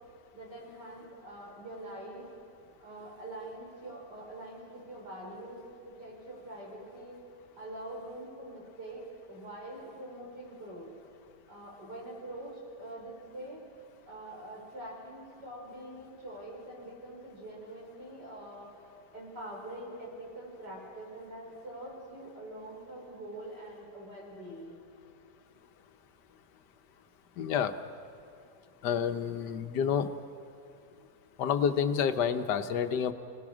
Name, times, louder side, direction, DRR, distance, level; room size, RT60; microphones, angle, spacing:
voice 1, 0.3-2.2 2.8-7.2 7.6-10.9 11.5-13.6 14.1-24.8, right 1 dB, 75° right, -3 dB, 6.0 m, -44 dB
voice 2, 27.4-27.7 28.8-30.1 31.4-33.1, left 7 dB, 75° left, 9 dB, 1.5 m, -29 dB
29.5 x 18.0 x 6.1 m, 2.4 s
omnidirectional pair, 1.8 m